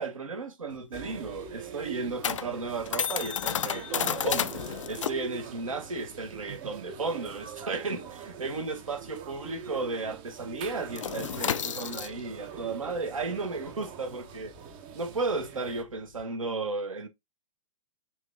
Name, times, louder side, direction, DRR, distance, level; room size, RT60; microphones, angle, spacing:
voice 1, 0.0-14.5 14.9-17.1, right 3 dB, 70° right, 1.2 m, -34 dB
sound 1, 0.7-9.7 9.9-10.2 10.5-16.2, left 8 dB, 65° left, 0.4 m, -34 dB
sound 2, 0.9-15.8, right 9 dB, 25° right, 0.6 m, -44 dB
4.6 x 2.6 x 3.4 m
figure-of-eight pair, 110°, 17 cm